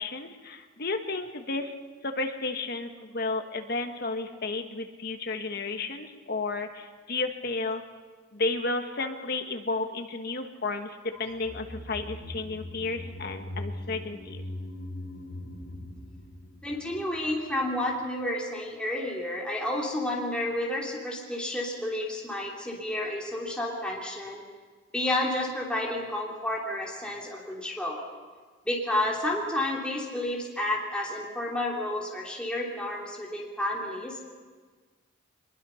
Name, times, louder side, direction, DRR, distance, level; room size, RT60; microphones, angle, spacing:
voice 1, 0.0-1.7 2.0-7.8 8.3-14.4, left 3 dB, 50° left, 5 dB, 1.5 m, -32 dB
sound 1, 11.2-17.6 17.9-18.0, left 1 dB, 65° left, 3.6 m, -41 dB
voice 2, 16.6-24.4 24.9-28.0 28.6-34.2, left 1 dB, 5° left, -3 dB, 3.0 m, -31 dB
23.5 x 22.0 x 5.7 m, 1.4 s
head